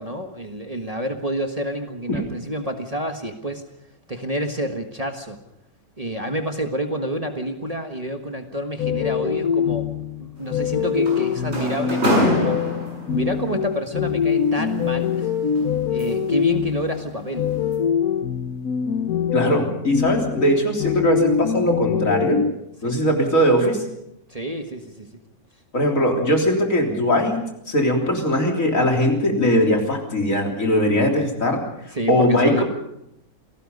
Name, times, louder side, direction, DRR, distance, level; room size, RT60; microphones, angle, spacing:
voice 1, 0.0-3.6 4.1-5.4 6.0-9.9 10.2-12.6 13.1-15.3 15.9-17.5 22.8-23.0 24.3-25.1 31.9-32.6, right 1 dB, 25° right, 4 dB, 1.6 m, -28 dB
sound 1, 8.8-22.5, left 8 dB, 75° left, 1.6 m, -24 dB
sound 2, 10.4-13.3 14.5-16.4 16.8-17.1 17.5-17.8, equal, 45° right, 7.5 m, -26 dB
voice 2, 19.3-22.4 22.8-23.8 25.7-27.4 27.7-31.6 32.1-32.6, equal, 60° left, 1 dB, 4.0 m, -20 dB
27.5 x 18.5 x 5.5 m, 0.80 s
omnidirectional pair, 1.6 m